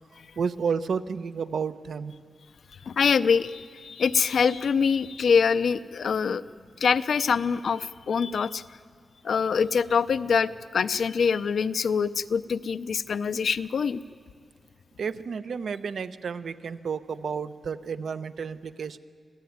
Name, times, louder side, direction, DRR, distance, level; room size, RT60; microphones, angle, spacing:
voice 1, 0.4-2.1 15.0-19.0, right 6 dB, 70° right, 12 dB, 0.8 m, -31 dB
voice 2, 2.9-6.4 6.8-8.6 9.2-14.0, left 6 dB, 70° left, 14 dB, 0.6 m, -24 dB
26.0 x 16.0 x 9.4 m, 2.1 s
wide cardioid pair, 180°, 0 cm